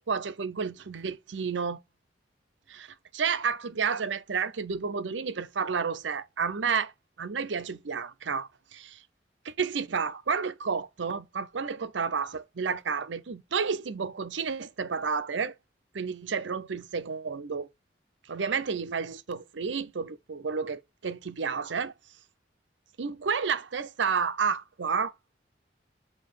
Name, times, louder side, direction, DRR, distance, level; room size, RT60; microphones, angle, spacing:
voice 1, 0.1-1.8 2.7-2.9 3.1-6.9 7.2-9.0 9.4-15.5 15.9-17.7 18.3-21.9 23.0-25.1, right 5 dB, 85° right, 0.6 m, -31 dB
7.6 x 2.9 x 5.1 m
head